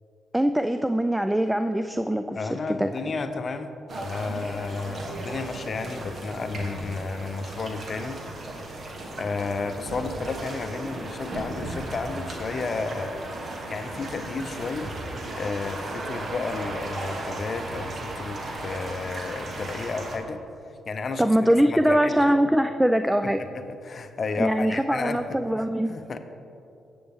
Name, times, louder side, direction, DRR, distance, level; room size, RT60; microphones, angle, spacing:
voice 1, 0.3-2.9 21.2-23.4 24.4-25.9, right 1 dB, 5° right, 9 dB, 0.4 m, -22 dB
voice 2, 2.4-8.2 9.1-13.2 13.7-14.9 15.3-21.3 21.6-22.3 23.4-25.4 25.9-26.2, left 4 dB, 50° left, 9 dB, 0.6 m, -32 dB
sound 1, 3.9-20.2, right 2 dB, 55° right, 1.4 m, -36 dB
10.0 x 7.8 x 3.6 m, 2.7 s
supercardioid pair, 50°, 0 cm